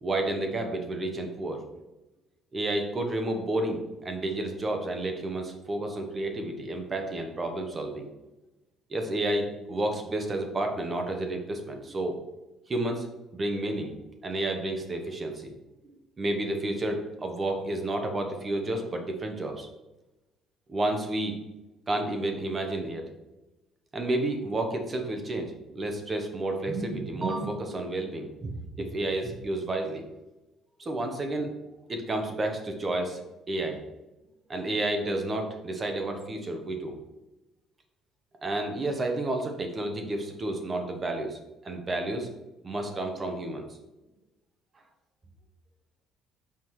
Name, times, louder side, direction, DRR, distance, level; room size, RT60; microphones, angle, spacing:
voice 1, 0.0-1.6 2.5-8.1 8.9-12.1 12.7-13.1 13.3-13.9 14.2-15.5 15.9-19.7 20.7-21.4 21.9-23.1 23.9-28.5 28.8-30.0 30.8-33.2 33.5-33.8 34.5-37.0 38.4-42.3 42.6-43.7, right 1 dB, 20° right, 4 dB, 0.9 m, -31 dB
5.8 x 4.7 x 4.6 m, 1.0 s
cardioid pair, 175°, 0 cm